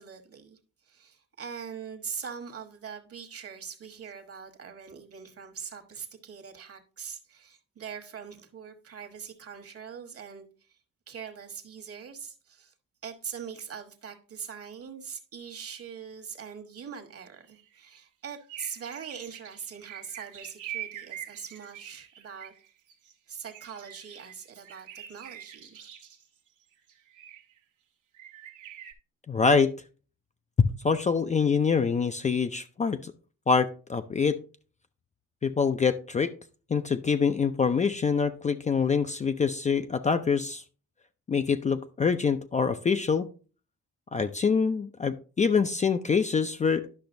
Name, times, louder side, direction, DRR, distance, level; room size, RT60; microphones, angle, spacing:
voice 1, 0.0-10.8 11.1-12.7 13.0-22.5 23.3-25.9, right 7 dB, 50° right, 1.3 m, -42 dB
sound 1, 17.5-18.0 18.3-23.1 23.5-26.3 26.9-27.6 28.1-28.9, right 11 dB, 80° right, 1.1 m, -44 dB
voice 2, 29.3-29.7 30.8-33.1 33.5-34.4 35.4-36.3 36.7-40.6 41.3-43.3 44.1-46.9, left 5 dB, 25° left, 0.4 m, -25 dB
10.5 x 5.8 x 2.6 m
cardioid pair, 90°, 30 cm